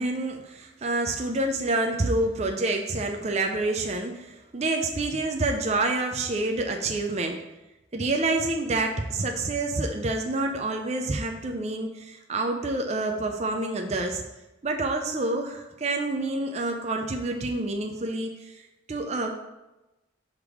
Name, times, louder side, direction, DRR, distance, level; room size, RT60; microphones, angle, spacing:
voice 1, 0.0-7.4 7.9-14.2 14.6-18.6 18.9-19.3, right 2 dB, 35° right, 3 dB, 0.4 m, -28 dB
6.4 x 3.5 x 4.8 m, 1.0 s
head